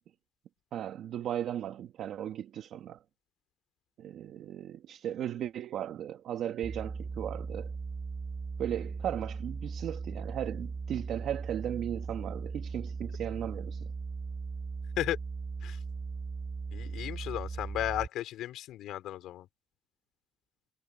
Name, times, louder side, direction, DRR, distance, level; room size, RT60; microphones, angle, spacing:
voice 1, 0.7-3.0 4.0-7.7 8.6-13.9, right 10 dB, 75° right, 1.8 m, -36 dB
sound 1, 6.6-18.1, right 4 dB, 35° right, 6.4 m, -38 dB
voice 2, 16.7-19.5, left 13 dB, 85° left, 4.1 m, -34 dB
cardioid pair, 90°, 0 cm